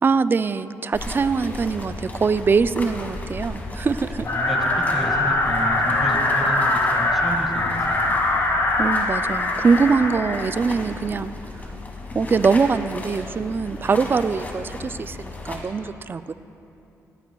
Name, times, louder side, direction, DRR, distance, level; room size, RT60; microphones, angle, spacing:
voice 1, 0.0-4.3 8.8-11.7 12.1-16.3, right 5 dB, 35° right, 14 dB, 0.4 m, -23 dB
sound 1, 0.9-15.6, left 2 dB, 30° left, 2.3 m, -35 dB
voice 2, 4.2-8.1 12.1-12.2, equal, 5° right, 0 dB, 2.0 m, -31 dB
sound 2, 4.3-10.5, left 2 dB, 55° left, 1.8 m, -22 dB
18.5 x 17.5 x 2.3 m, 2.9 s
cardioid pair, 85°, 6 cm